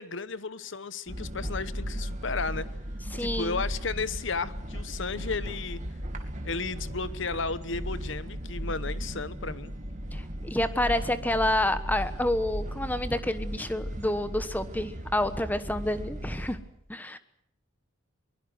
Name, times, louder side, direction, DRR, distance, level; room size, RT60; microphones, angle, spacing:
voice 1, 0.0-2.7 3.2-5.8 6.4-9.7, left 4 dB, 65° left, 16 dB, 1.0 m, -34 dB
sound 1, 1.1-16.6, equal, 35° right, 2.5 m, -36 dB
voice 2, 3.1-3.6 10.1-16.6 16.9-17.2, left 1 dB, 10° left, 12 dB, 1.2 m, -29 dB
22.5 x 21.5 x 7.9 m, 0.68 s
head